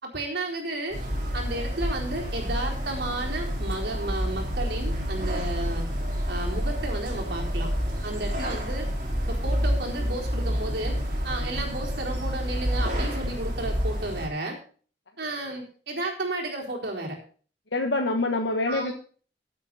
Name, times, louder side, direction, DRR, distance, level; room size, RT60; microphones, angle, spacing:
voice 1, 0.0-1.0 1.3-5.8 6.3-7.7 8.0-8.9 9.2-11.0 11.2-14.6 15.2-17.2 18.7-18.9, right 2 dB, 65° right, 0 dB, 4.2 m, -32 dB
sound 1, 0.9-14.3, equal, 50° right, 4.0 m, -29 dB
voice 2, 17.7-18.9, left 2 dB, 85° left, 3 dB, 1.3 m, -25 dB
15.5 x 8.3 x 4.1 m, 0.42 s
head